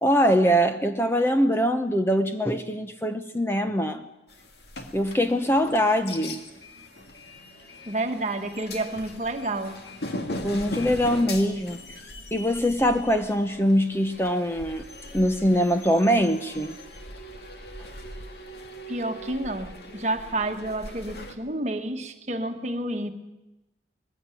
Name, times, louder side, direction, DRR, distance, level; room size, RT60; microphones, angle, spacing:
voice 1, 0.0-4.0 4.9-6.4 10.4-11.8 12.3-14.8 15.1-16.8, equal, 15° left, 7 dB, 0.8 m, -23 dB
sound 1, 4.3-21.3, left 1 dB, 65° left, 2.1 m, -40 dB
voice 2, 7.9-9.8 18.9-23.1, right 2 dB, 40° right, 6 dB, 1.5 m, -30 dB
21.0 x 16.0 x 9.2 m, 1.0 s
head